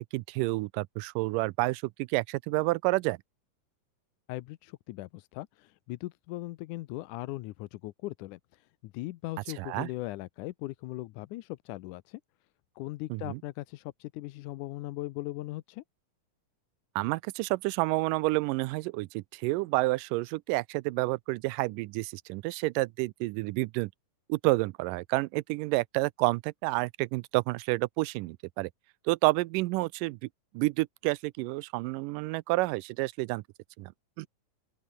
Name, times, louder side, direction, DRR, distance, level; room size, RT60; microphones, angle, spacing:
voice 1, 0.0-3.2 9.6-9.9 13.1-13.4 17.0-23.9 24.3-28.7 29.1-30.3 30.5-33.4 33.8-33.9 34.2-34.3, right 22 dB, 85° right, 2.2 m, -29 dB
voice 2, 4.3-12.2 12.8-15.8, left 18 dB, 75° left, 2.1 m, -39 dB
open air
omnidirectional pair, 3.9 m